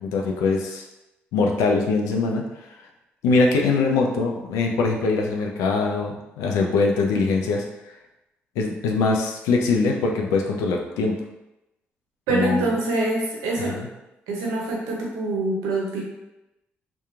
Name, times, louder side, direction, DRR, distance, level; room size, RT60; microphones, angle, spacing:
voice 1, 0.0-0.8 1.3-2.4 3.2-7.6 8.6-11.2 12.3-12.6 13.7-13.9, left 3 dB, 80° left, 1 dB, 0.4 m, -22 dB
voice 2, 12.3-13.8 14.3-16.0, right 2 dB, 80° right, -2 dB, 0.6 m, -25 dB
2.9 x 2.2 x 2.4 m, 0.94 s
hypercardioid pair, 45°, 6 cm